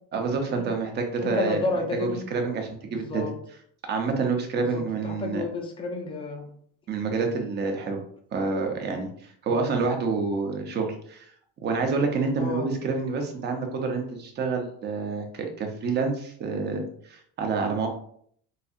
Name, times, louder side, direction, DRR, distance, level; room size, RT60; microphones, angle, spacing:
voice 1, 0.1-1.6 1.9-3.2 3.9-5.5 6.9-8.0 8.3-11.3 11.6-17.9, right 4 dB, 30° right, 3 dB, 0.6 m, -28 dB
voice 2, 1.2-2.2 2.9-3.3 4.6-6.5 9.5-9.7 12.4-12.7, left 2 dB, 15° left, 2 dB, 0.4 m, -31 dB
4.0 x 2.6 x 2.4 m, 0.62 s
cardioid pair, 150°, 36 cm